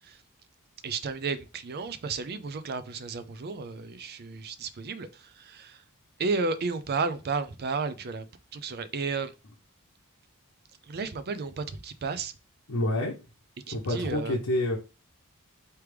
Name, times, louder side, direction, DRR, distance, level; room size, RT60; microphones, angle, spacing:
voice 1, 0.8-5.8 6.2-8.3 8.5-9.3 10.9-12.3 13.7-14.4, right 4 dB, 45° right, 0.5 m, -33 dB
voice 2, 12.7-13.1 13.7-14.8, left 1 dB, 65° left, 0.9 m, -28 dB
4.6 x 3.3 x 3.3 m
head